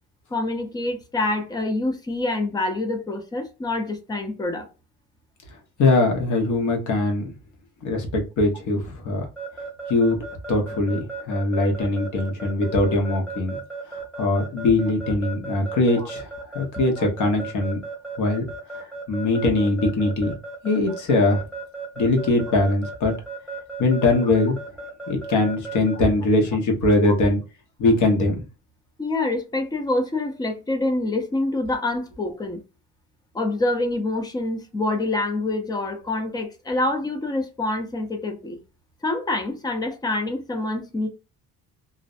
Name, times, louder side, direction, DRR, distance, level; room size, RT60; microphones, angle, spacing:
voice 1, 0.3-4.7 16.0-16.1 27.0-27.1 29.0-32.6 33.3-38.6 39.0-41.1, left 2 dB, 15° left, 0.4 m, -26 dB
voice 2, 5.8-7.3 7.8-9.3 9.9-10.2 10.5-13.6 14.2-16.3 16.5-17.8 18.2-18.4 19.1-20.3 20.6-21.4 22.0-23.1 23.8-24.6 25.1-27.4 27.8-28.4, left 2 dB, 60° left, 0.9 m, -21 dB
Keyboard (musical) / Alarm, 9.4-26.0, right 3 dB, 5° right, 0.7 m, -35 dB
2.5 x 2.0 x 2.4 m
cardioid pair, 160°, 33 cm